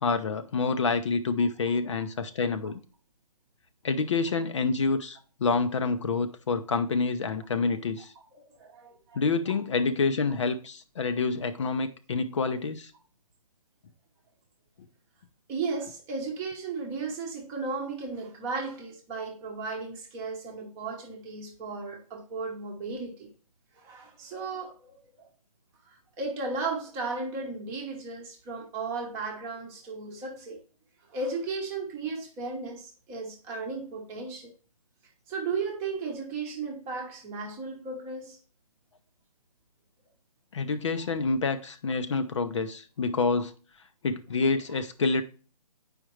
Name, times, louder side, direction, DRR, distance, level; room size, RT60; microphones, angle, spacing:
voice 1, 0.0-2.8 3.8-8.1 9.1-12.9 40.5-43.5 44.0-45.2, left 4 dB, 50° left, 0.7 m, -27 dB
voice 2, 8.3-9.2 9.5-9.6 15.5-23.3 23.8-25.3 25.8-30.6 31.1-34.5 35.3-38.4 44.7-44.8, right 4 dB, 15° right, 0.9 m, -35 dB
8.9 x 5.0 x 3.1 m
hypercardioid pair, 160°, 20 cm